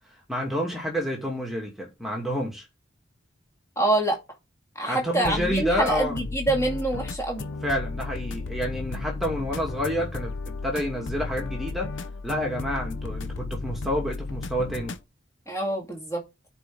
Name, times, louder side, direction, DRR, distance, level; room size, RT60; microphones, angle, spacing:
voice 1, 0.3-2.6 4.8-6.2 7.6-11.9 12.2-15.0, equal, ahead, 2.3 m, -29 dB
voice 2, 3.8-4.2 4.8-7.5 15.5-16.2, right 1 dB, 15° left, 2.2 m, -26 dB
sound 1, 5.2-15.0, left 3 dB, 70° left, 0.6 m, -34 dB
10.5 x 4.5 x 3.8 m
head